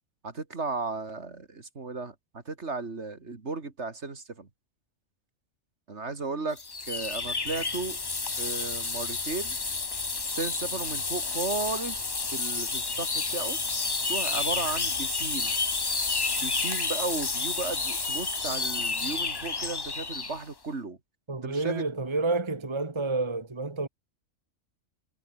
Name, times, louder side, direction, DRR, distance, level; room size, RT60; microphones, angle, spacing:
voice 1, 0.2-4.5 5.9-6.6 6.9-8.0 8.4-9.6 10.3-13.6 13.9-15.5 16.4-21.0 21.4-21.9, right 3 dB, 55° right, 2.7 m, -35 dB
sound 1, 6.6-20.4, left 4 dB, 25° left, 0.7 m, -30 dB
voice 2, 21.3-23.9, right 3 dB, 20° right, 1.4 m, -29 dB
omnidirectional pair, 1.4 m